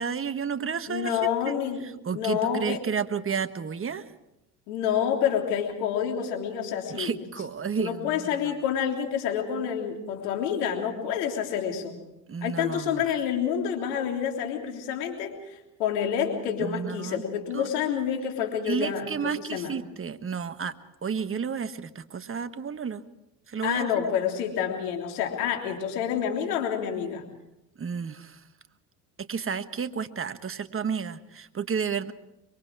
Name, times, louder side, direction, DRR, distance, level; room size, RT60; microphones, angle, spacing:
voice 1, 0.0-1.5 2.0-4.0 6.9-8.3 12.3-13.0 16.6-17.2 17.5-17.7 18.7-20.7 21.0-23.0 23.5-23.9 27.8-28.4 29.2-32.1, right 6 dB, 30° right, 11 dB, 1.4 m, -31 dB
voice 2, 0.9-1.8 2.1-2.8 4.7-7.1 7.8-12.0 12.4-19.7 23.6-27.2, left 8 dB, 85° left, 2 dB, 3.5 m, -28 dB
25.5 x 23.0 x 4.8 m, 0.88 s
hypercardioid pair, 75°, 45 cm